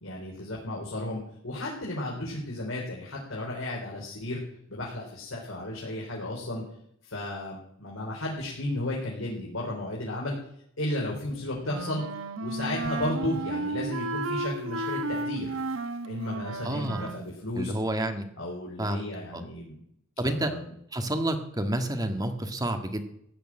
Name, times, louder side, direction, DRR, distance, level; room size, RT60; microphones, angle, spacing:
voice 1, 0.0-4.4 4.7-6.6 7.0-10.4 10.8-12.0 12.4-15.5 16.0-17.7 18.4-19.7 20.3-20.7, left 1 dB, 75° left, -3 dB, 3.8 m, -34 dB
Wind instrument woodwind instrument, 11.6-17.3, right 2 dB, 80° right, 1.0 m, -33 dB
voice 2, 16.6-17.1 17.6-18.3 18.8-19.1 19.3-19.5 20.2-20.5 20.9-23.1, right 1 dB, 20° right, 6 dB, 1.7 m, -29 dB
15.5 x 6.8 x 9.9 m, 0.70 s
head